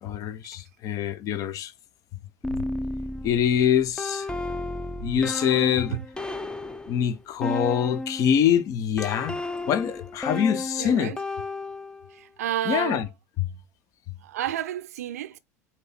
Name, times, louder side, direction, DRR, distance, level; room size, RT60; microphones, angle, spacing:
voice 1, 0.0-1.7 3.2-4.3 5.0-6.0 6.9-9.4 9.7-11.1 12.7-13.1 13.4-13.5 14.1-14.2, left 9 dB, 40° left, 0.8 m, -24 dB
sound 1, 2.4-8.4 9.0-12.2, left 2 dB, 10° left, 0.7 m, -33 dB
voice 2, 10.8-11.2 12.1-13.1 14.2-15.4, right 12 dB, 70° right, 0.6 m, -31 dB
7.9 x 3.0 x 5.7 m
figure-of-eight pair, 75°, 9 cm